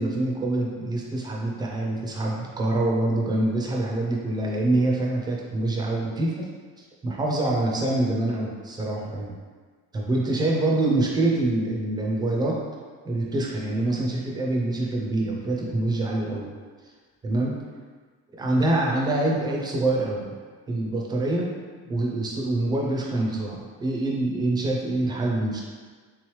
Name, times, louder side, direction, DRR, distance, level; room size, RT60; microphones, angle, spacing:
voice 1, 0.0-6.5 6.8-9.3 9.9-12.6 13.1-16.5 17.2-17.6 18.3-20.3 20.7-21.5 21.9-25.6, right 2 dB, 15° right, -2 dB, 0.3 m, -25 dB
3.4 x 3.0 x 3.1 m, 1.5 s
cardioid pair, 165°, 34 cm